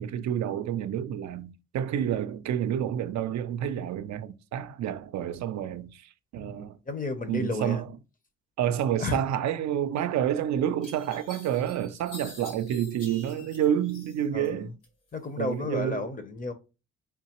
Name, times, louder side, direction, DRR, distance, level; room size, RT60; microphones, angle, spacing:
voice 1, 0.0-6.8 7.3-7.9 8.6-14.7 15.4-16.1, right 10 dB, 65° right, 0.5 m, -29 dB
voice 2, 6.4-7.8 9.0-9.2 14.3-14.7 15.1-16.5, left 3 dB, 25° left, 0.7 m, -33 dB
sound 1, 10.1-10.2 10.8-14.5 14.8-15.6, left 2 dB, 85° left, 1.8 m, -48 dB
3.5 x 2.8 x 3.0 m
cardioid pair, 90°, 30 cm